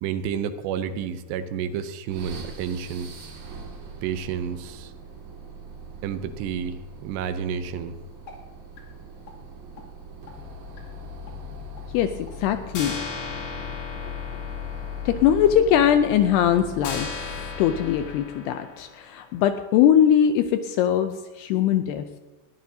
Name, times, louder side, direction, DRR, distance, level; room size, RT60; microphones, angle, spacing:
voice 1, 0.0-3.1 4.0-4.9 6.0-8.0, right 7 dB, 80° right, 10 dB, 2.8 m, -30 dB
sound 1, 2.1-18.2, left 3 dB, 55° right, 3.3 m, -39 dB
sound 2, 7.8-7.9 8.3-8.4 8.8-8.9 9.3-9.4 9.8-9.9 10.3-10.4 10.8-10.9 11.3-11.4 11.8-11.9 12.3-12.4 12.7-19.4, left 4 dB, 60° left, 4.2 m, -38 dB
voice 2, 11.9-13.0 15.1-22.2, left 9 dB, 80° left, 8 dB, 2.4 m, -21 dB
20.5 x 15.0 x 2.7 m, 1.2 s
omnidirectional pair, 5.2 m